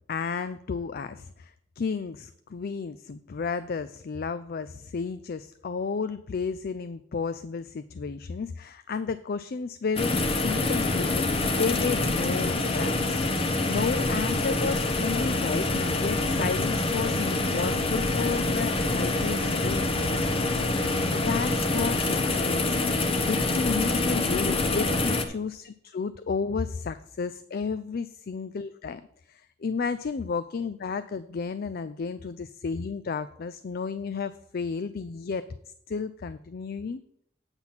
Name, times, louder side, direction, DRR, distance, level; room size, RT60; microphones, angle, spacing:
voice 1, 0.1-20.3 20.8-29.0 29.3-35.4 35.9-37.0, left 5 dB, 55° left, 12 dB, 0.4 m, -32 dB
sound 1, 10.0-25.3, left 2 dB, 30° left, 0.9 m, -26 dB
8.9 x 6.1 x 5.7 m, 0.71 s
head